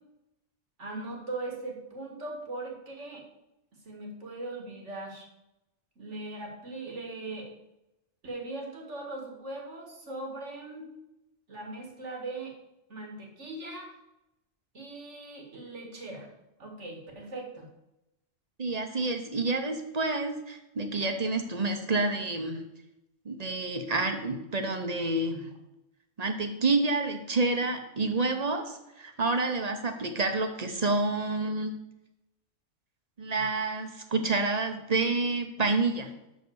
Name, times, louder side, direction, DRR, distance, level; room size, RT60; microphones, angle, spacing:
voice 1, 0.8-3.2 3.9-5.3 6.0-7.5 8.2-10.9 11.5-12.5 12.9-13.9 14.7-16.3 16.6-17.7 33.4-33.5, right 2 dB, 80° right, 1 dB, 2.2 m, -39 dB
voice 2, 18.6-22.6 23.2-25.5 26.2-31.7 33.2-36.1, right 3 dB, 35° right, 6 dB, 1.0 m, -29 dB
6.4 x 6.0 x 6.9 m, 0.90 s
omnidirectional pair, 1.2 m